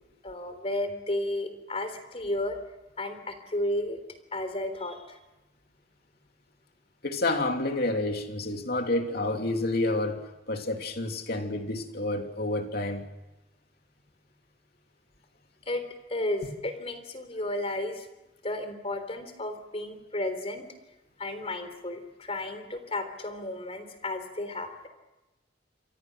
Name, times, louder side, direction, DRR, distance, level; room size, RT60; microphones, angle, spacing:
voice 1, 0.2-2.6 3.0-4.0 4.3-5.2 15.7-15.8 16.1-18.1 18.4-20.6 21.2-24.9, left 1 dB, 35° left, 9 dB, 3.7 m, -33 dB
voice 2, 7.0-13.1, left 2 dB, 55° left, 4 dB, 3.0 m, -29 dB
28.0 x 25.5 x 6.4 m, 0.98 s
head